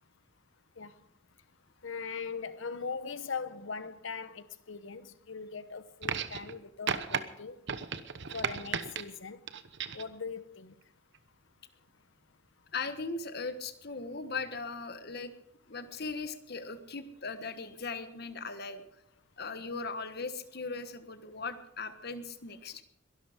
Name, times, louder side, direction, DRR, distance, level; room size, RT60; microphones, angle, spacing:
voice 1, 1.8-7.6 8.3-9.4 9.9-10.7, left 5 dB, 70° left, 0.9 m, -40 dB
sound 1, 6.0-6.6 6.9-7.2 7.7-9.0 9.5-10.1 11.1-11.2, right 6 dB, 60° right, 1.0 m, -34 dB
voice 2, 12.7-15.3 15.7-18.8 19.4-22.8, left 4 dB, 50° left, 1.4 m, -39 dB
22.5 x 12.5 x 5.1 m
head